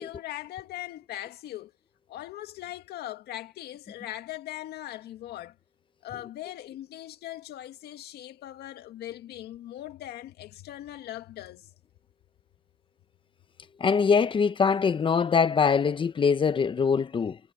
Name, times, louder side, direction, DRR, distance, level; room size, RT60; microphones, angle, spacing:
voice 1, 0.0-1.7 2.1-5.6 6.0-11.7, left 13 dB, 70° left, 2.0 m, -40 dB
voice 2, 13.8-17.4, left 6 dB, 30° left, 0.9 m, -23 dB
cardioid pair, 110°, 17 cm